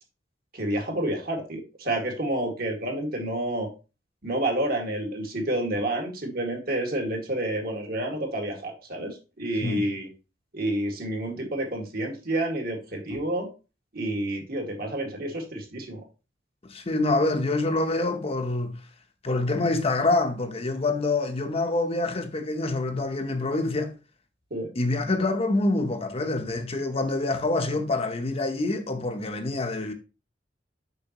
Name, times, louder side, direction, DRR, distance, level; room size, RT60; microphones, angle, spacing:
voice 1, 0.5-3.7 4.2-10.1 10.5-13.5 13.9-16.0 24.5-24.7, right 1 dB, 55° right, 2.0 m, -29 dB
voice 2, 16.6-18.8 19.2-23.9 24.7-29.9, left 2 dB, 35° left, 0.9 m, -26 dB
6.7 x 6.3 x 3.0 m
head